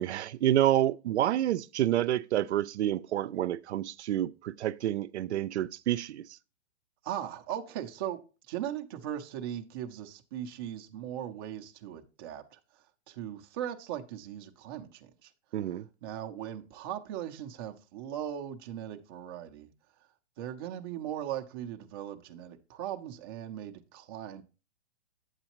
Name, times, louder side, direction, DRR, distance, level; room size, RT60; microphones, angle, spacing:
voice 1, 0.0-6.3 15.5-15.8, right 12 dB, 75° right, 0.5 m, -28 dB
voice 2, 7.0-12.6 13.1-15.3 15.6-19.7 20.4-24.4, right 10 dB, 20° right, 0.5 m, -39 dB
8.7 x 8.0 x 2.9 m
hypercardioid pair, 155°, 34 cm